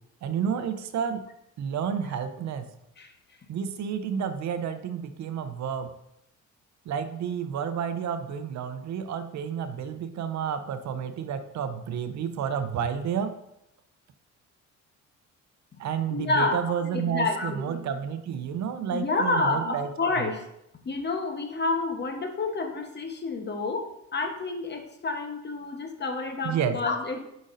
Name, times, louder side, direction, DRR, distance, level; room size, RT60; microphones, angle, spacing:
voice 1, 0.2-1.2 1.6-2.7 3.5-5.9 6.9-13.3 15.8-19.9 20.2-20.3 26.4-26.8, right 7 dB, 65° right, 9 dB, 0.7 m, -30 dB
voice 2, 16.1-16.6 16.9-17.7 18.9-20.4 20.8-27.2, left 3 dB, 35° left, 4 dB, 1.1 m, -29 dB
7.9 x 5.2 x 2.6 m, 0.81 s
cardioid pair, 90°, 30 cm